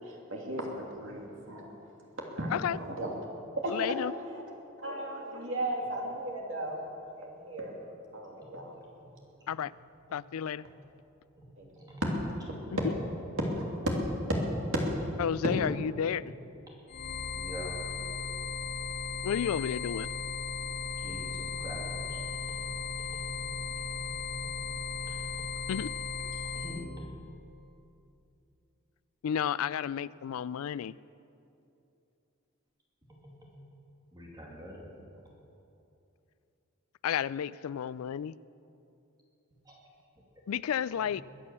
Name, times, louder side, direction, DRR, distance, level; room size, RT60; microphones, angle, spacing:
voice 1, 0.0-1.7 2.2-3.1 3.6-4.0 4.3-4.4 4.8-7.7 8.1-8.8 11.6-11.9 13.4-13.9 14.7-14.8, right 1 dB, 65° right, 0 dB, 2.8 m, -35 dB
voice 2, 3.7-4.1 9.5-9.7 10.1-10.7 15.2-16.3 19.2-20.1 25.7-25.9 29.2-30.9 37.0-38.4 40.5-41.2, left 8 dB, 90° left, 19 dB, 0.4 m, -32 dB
sound 1, 16.9-26.8, left 4 dB, 50° left, 1.0 m, -36 dB
voice 3, 17.3-17.7 21.0-22.2 22.5-22.6 23.0-23.5 24.0-24.5 25.1-25.5 26.4-27.1 33.1-33.5 34.1-34.8 39.7-39.8, equal, 20° right, -3 dB, 2.5 m, -46 dB
22.0 x 8.7 x 7.1 m, 2.7 s
head